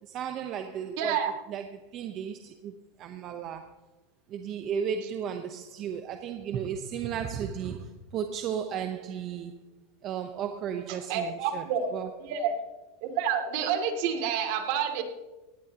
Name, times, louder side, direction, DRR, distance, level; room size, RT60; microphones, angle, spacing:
voice 1, 0.0-3.8 4.3-9.6 10.0-11.7 11.9-12.1, right 8 dB, 35° right, 0.9 m, -34 dB
voice 2, 1.0-1.3 10.9-11.9 12.2-12.5 13.0-15.0, right 8 dB, 55° right, 2.6 m, -29 dB
18.5 x 17.0 x 3.0 m
supercardioid pair, 150°, 0 cm